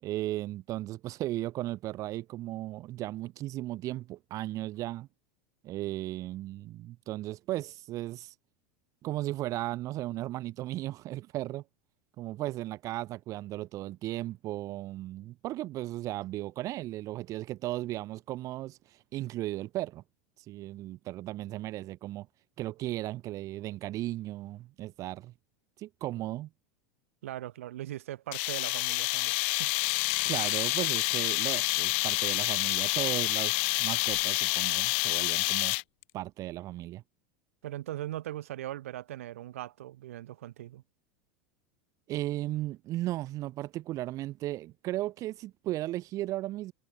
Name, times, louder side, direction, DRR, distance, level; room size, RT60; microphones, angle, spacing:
voice 1, 0.0-5.1 5.6-8.3 9.0-11.6 12.2-20.0 20.4-22.3 22.6-25.3 25.8-26.5 30.3-35.8 36.1-37.0 42.1-46.7, right 15 dB, 45° right, 3.9 m, -36 dB
voice 2, 27.2-29.7 37.6-40.8, right 13 dB, 75° right, 3.5 m, -40 dB
sound 1, 28.3-36.0, left 30 dB, 65° left, 1.5 m, -28 dB
hypercardioid pair, 95°, 7 cm